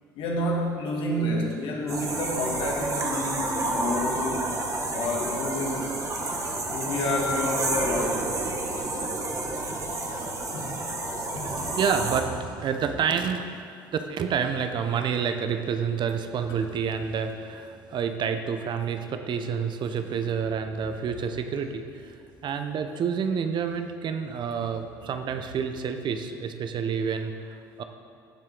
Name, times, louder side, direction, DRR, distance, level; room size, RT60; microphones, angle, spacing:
voice 1, 0.2-4.6 4.9-5.9 6.7-8.3 8.9-9.0 9.7-9.8 10.5-10.8 11.3-11.7, left 1 dB, 60° left, -1 dB, 2.5 m, -29 dB
sound 1, 1.9-12.2, right 2 dB, 30° right, 1.8 m, -30 dB
voice 2, 11.1-13.4 13.9-22.1 22.4-27.8, right 6 dB, 50° right, 7 dB, 0.9 m, -29 dB
16.5 x 7.5 x 3.9 m, 2.4 s
hypercardioid pair, 60°, 10 cm